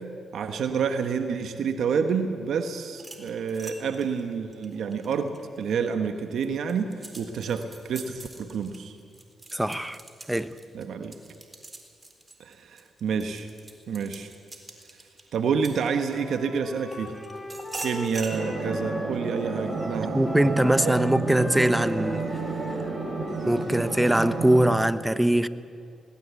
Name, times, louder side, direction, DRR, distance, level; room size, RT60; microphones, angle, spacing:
voice 1, 0.3-8.9 10.7-11.1 12.4-13.5 13.9-14.3 15.3-17.1 17.8-20.2 20.8-20.9, right 6 dB, 75° right, 1.2 m, -28 dB
sound 1, 2.9-5.7 6.2-16.4 16.9-18.4, right 2 dB, 25° right, 4.0 m, -43 dB
voice 2, 9.5-10.0 10.3-10.5 20.0-22.3 23.5-25.5, right 1 dB, 10° right, 1.0 m, -22 dB
Wind instrument woodwind instrument, 16.1-24.5, equal, 15° left, 3.5 m, -38 dB
sound 2, 18.3-24.8, right 4 dB, 55° right, 3.9 m, -31 dB
20.0 x 19.0 x 8.3 m
supercardioid pair, 50°, 0 cm